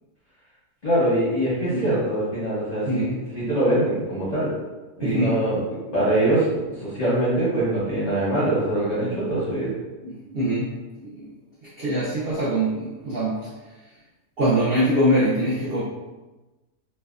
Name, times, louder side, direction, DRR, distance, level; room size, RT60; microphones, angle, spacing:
voice 1, 0.8-3.0 3.3-4.5 5.0-5.6 5.9-9.7, right 1 dB, 45° left, -10 dB, 0.6 m, -23 dB
voice 2, 2.9-3.2 5.0-5.4 10.0-10.7 11.0-11.3 11.8-13.4 14.4-15.8, right 1 dB, 70° right, -8 dB, 0.5 m, -23 dB
2.6 x 2.2 x 2.3 m, 1.1 s
omnidirectional pair, 1.6 m